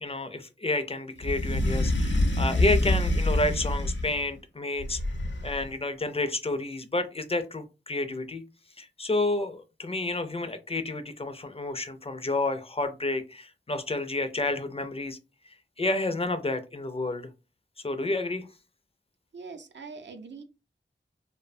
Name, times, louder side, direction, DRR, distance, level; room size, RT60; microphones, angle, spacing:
voice 1, 0.0-5.0 5.4-8.4 8.8-15.2 15.8-17.3 17.8-18.5, left 2 dB, 30° left, 0.4 m, -30 dB
sound 1, 1.2-4.2 4.8-5.7, left 1 dB, 70° left, 0.6 m, -26 dB
voice 2, 19.3-20.4, right 4 dB, 70° right, 0.5 m, -42 dB
2.6 x 2.1 x 2.5 m
wide cardioid pair, 50°, 19 cm